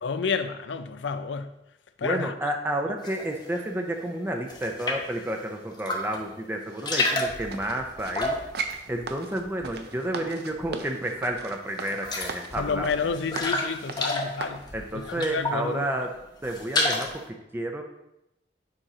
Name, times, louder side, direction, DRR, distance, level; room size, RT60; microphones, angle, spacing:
voice 1, 0.0-1.5 2.0-2.3 12.6-14.6 14.9-15.9, left 5 dB, 85° left, 0.4 m, -30 dB
voice 2, 2.0-8.4 8.9-13.1 14.7-16.2 16.4-17.8, right 1 dB, 10° right, 0.5 m, -31 dB
sound 1, 3.0-3.6 4.0-5.2 5.7-6.3 6.6-10.0 10.3-11.0 11.3-11.4 11.7-15.7 16.1-17.3, left 2 dB, 25° left, 0.7 m, -31 dB
sound 2, 7.5-14.6 15.2-15.3, right 4 dB, 60° right, 0.5 m, -38 dB
6.6 x 3.0 x 4.9 m
head